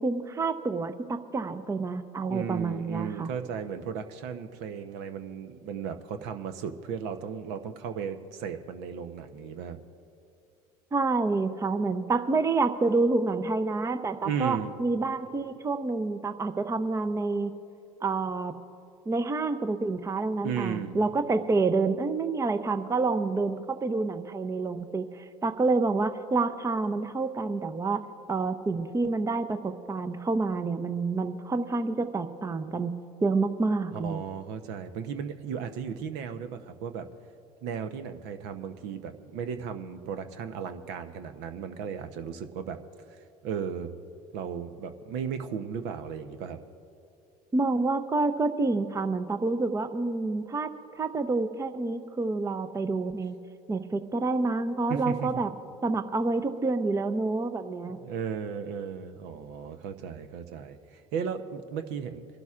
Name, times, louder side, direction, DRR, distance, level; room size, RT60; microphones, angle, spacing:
voice 1, 0.0-3.3 10.9-17.5 18.0-18.5 19.1-28.0 28.3-32.9 33.2-34.2 47.5-53.4 53.7-55.5 55.8-58.0, right 3 dB, 15° right, 9 dB, 0.6 m, -28 dB
voice 2, 2.3-9.8 14.2-14.7 20.4-21.0 33.9-37.1 37.6-42.8 43.1-43.2 43.4-43.9 44.3-46.6 54.9-55.4 58.0-62.3, right 7 dB, 65° right, 9 dB, 0.8 m, -35 dB
29.0 x 12.0 x 2.5 m, 2.6 s
hypercardioid pair, 80°, 19 cm